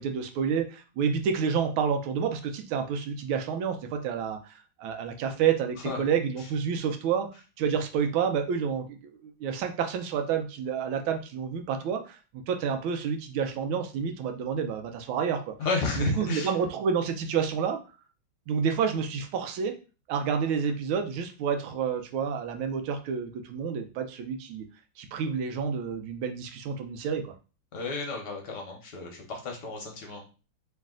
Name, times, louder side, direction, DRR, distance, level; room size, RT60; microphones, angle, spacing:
voice 1, 0.0-7.3 7.6-12.2 12.5-15.5 16.0-17.8 18.5-19.8 20.1-24.6 25.0-27.3, right 6 dB, 80° right, 6 dB, 1.4 m, -29 dB
voice 2, 15.6-16.5 27.7-30.3, left 3 dB, 60° left, 1 dB, 1.3 m, -32 dB
3.2 x 3.1 x 3.6 m, 0.33 s
omnidirectional pair, 2.3 m